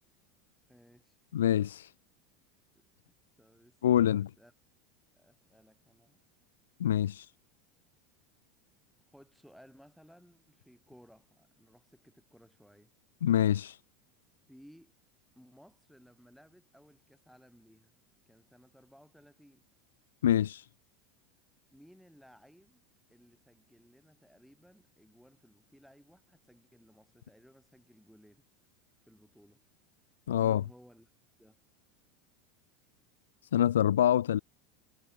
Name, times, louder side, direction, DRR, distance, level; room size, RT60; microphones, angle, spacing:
voice 1, 0.7-1.2 2.7-2.8 3.4-3.8 4.1-4.5 5.2-6.2 9.1-12.9 14.5-14.9 15.3-18.0 18.3-19.7 21.7-22.8 23.1-28.4 29.1-29.6 30.4-31.1 31.4-31.6, equal, ahead, 6.6 m, -59 dB
voice 2, 1.3-1.9 3.8-4.3 6.8-7.3 13.2-13.8 20.2-20.7 30.3-30.6 33.5-34.4, left 10 dB, 90° left, 0.5 m, -26 dB
hypercardioid pair, 100°, 0 cm